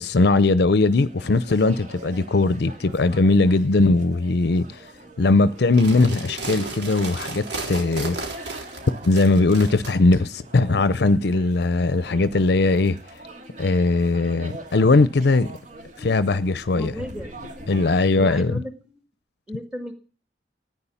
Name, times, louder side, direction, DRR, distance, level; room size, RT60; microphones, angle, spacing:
voice 1, 0.0-4.8 5.2-8.2 9.0-13.0 13.6-15.5 16.0-16.9 17.7-18.5, left 3 dB, 65° left, 0.6 m, -19 dB
sound 1, 0.9-18.1, right 1 dB, 45° right, 2.3 m, -43 dB
sound 2, 5.6-9.9, right 3 dB, 75° right, 3.8 m, -33 dB
voice 2, 16.7-17.4 17.7-18.7 19.5-19.9, left 1 dB, 5° right, 1.9 m, -35 dB
14.0 x 9.5 x 7.0 m
head